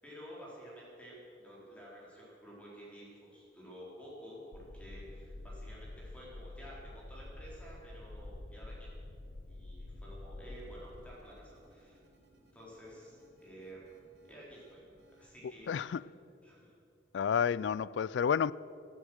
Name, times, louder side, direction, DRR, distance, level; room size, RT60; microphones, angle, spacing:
voice 1, 0.0-8.9 9.5-12.0 12.5-13.8 14.2-14.8 15.2-16.0 16.4-16.7, equal, 5° left, 4.0 m, -51 dB
sound 1, 4.5-11.2, left 2 dB, 55° left, 0.8 m, -47 dB
sound 2, 10.3-16.1, equal, 65° right, 3.2 m, -64 dB
voice 2, 15.7-16.0 17.1-18.5, left 7 dB, 75° left, 0.3 m, -30 dB
16.0 x 13.5 x 6.4 m
head